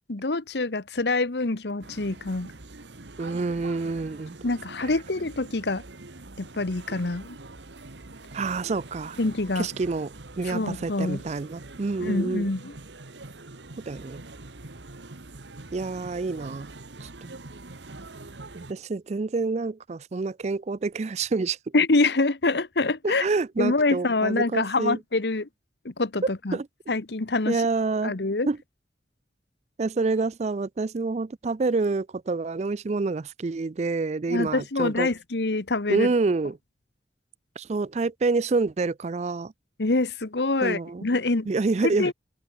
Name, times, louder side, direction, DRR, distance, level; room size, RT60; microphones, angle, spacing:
voice 1, 0.1-2.5 4.4-5.8 6.4-7.4 9.2-9.7 10.5-11.2 12.0-12.7 21.7-23.3 23.6-25.5 25.8-26.6 26.9-27.6 28.0-28.5 34.3-36.1 39.8-41.5 41.8-42.1, left 3 dB, 70° left, 1.2 m, -25 dB
sound 1, 1.8-18.7, right 2 dB, 90° right, 1.7 m, -44 dB
voice 2, 3.2-4.4 4.8-4.9 8.3-9.2 9.6-12.5 13.9-14.2 15.7-16.7 17.0-17.4 18.5-21.6 23.0-25.0 26.5-26.7 27.5-28.2 28.5-28.6 29.8-35.1 35.9-36.6 37.6-39.5 40.6-41.1 41.5-42.1, right 3 dB, 40° right, 0.4 m, -27 dB
open air
head